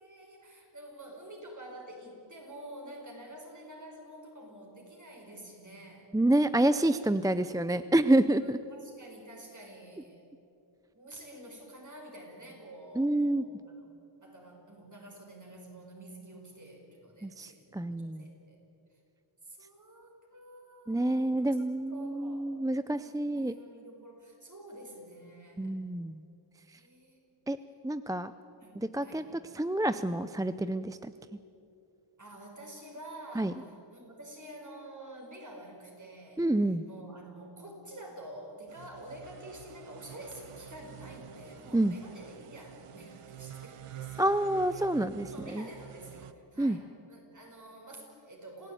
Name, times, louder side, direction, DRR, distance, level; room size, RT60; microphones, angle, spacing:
voice 1, 0.0-6.1 8.4-10.2 10.9-13.9 14.2-18.6 19.4-22.5 22.9-25.8 26.7-27.2 28.6-29.3 32.2-44.3 44.7-44.8 45.3-48.7, right 1 dB, 35° right, 0 dB, 5.9 m, -49 dB
voice 2, 6.1-8.6 13.0-13.4 17.2-18.2 20.9-23.6 25.6-26.2 27.5-27.6 27.8-28.3 28.8-29.2 29.5-31.1 33.4-33.5 36.4-36.8 41.7-42.0 44.2-45.7 46.6-46.8, right 1 dB, 10° right, 12 dB, 0.4 m, -28 dB
sound 1, 38.7-46.3, right 9 dB, 90° right, 1.0 m, -48 dB
27.0 x 17.0 x 9.2 m, 2.7 s
wide cardioid pair, 130°, 50 cm